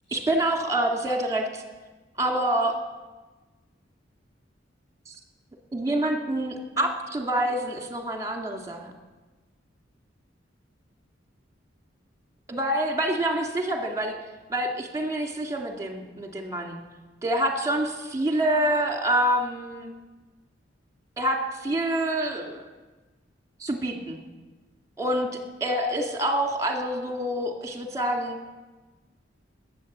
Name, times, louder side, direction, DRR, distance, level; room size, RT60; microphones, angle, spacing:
voice 1, 0.1-1.6 2.2-2.8 5.1-5.2 5.7-8.9 12.5-14.2 14.5-16.8 17.2-19.9 21.2-22.6 23.6-24.2 25.0-25.3 25.6-28.4, right 1 dB, 20° right, 2 dB, 2.1 m, -26 dB
19.5 x 8.7 x 7.3 m, 1.2 s
head